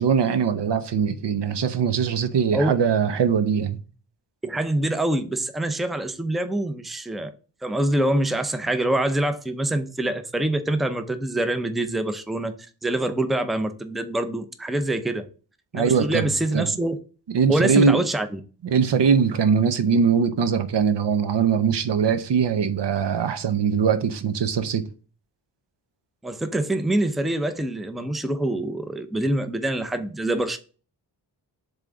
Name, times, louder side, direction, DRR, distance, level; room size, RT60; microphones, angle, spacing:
voice 1, 0.0-3.8 15.7-16.7 17.3-18.0 18.6-24.9, right 6 dB, 65° right, 0.7 m, -21 dB
voice 2, 4.4-7.3 7.6-12.6 12.8-15.3 15.7-17.0 17.5-18.4 26.2-30.6, right 1 dB, ahead, 0.6 m, -25 dB
7.3 x 3.6 x 3.8 m
wide cardioid pair, 95°, 45 cm